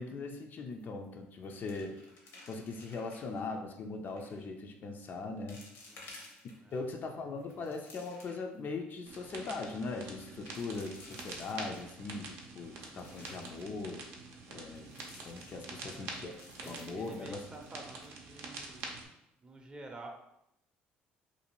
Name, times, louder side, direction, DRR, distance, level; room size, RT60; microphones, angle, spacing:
voice 1, 0.0-2.0 2.5-5.6 6.4-14.0 14.5-14.9 15.2-16.3 16.7-17.4, left 3 dB, 50° left, 4 dB, 0.4 m, -40 dB
sound 1, 0.7-1.1 1.3-3.4 4.1-4.4 5.0-5.1 5.5-6.8 7.3-8.6 9.0-9.1 9.3-9.5 10.2-12.1 12.6-13.6 14.8-15.9 16.3-17.8 18.0-18.1 18.6-18.9, left 2 dB, 75° left, 0.8 m, -55 dB
voice 2, 5.9-6.3 6.6-6.9 7.2-7.6 15.8-16.3 16.6-18.9 19.4-20.1, right 2 dB, 25° right, 2 dB, 0.5 m, -51 dB
sound 2, 9.1-19.1, right 3 dB, 75° right, 0.5 m, -47 dB
2.6 x 2.4 x 2.9 m, 0.82 s
supercardioid pair, 80°, 4 cm